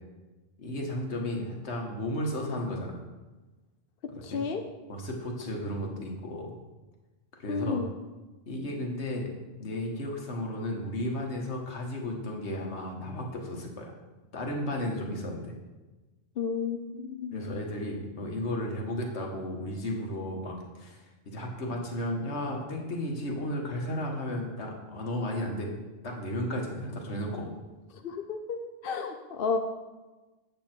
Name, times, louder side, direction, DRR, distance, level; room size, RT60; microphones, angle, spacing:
voice 1, 0.6-3.0 4.3-4.4 4.9-6.6 7.3-7.8 8.5-9.3 9.6-13.9 14.3-15.5 17.3-25.7 26.0-27.5, left 1 dB, 80° left, 1 dB, 1.8 m, -34 dB
voice 2, 4.2-4.6 7.5-7.9 16.4-17.5 27.9-29.6, left 5 dB, 60° left, 5 dB, 0.8 m, -32 dB
8.9 x 7.9 x 4.4 m, 1.2 s
omnidirectional pair, 1.1 m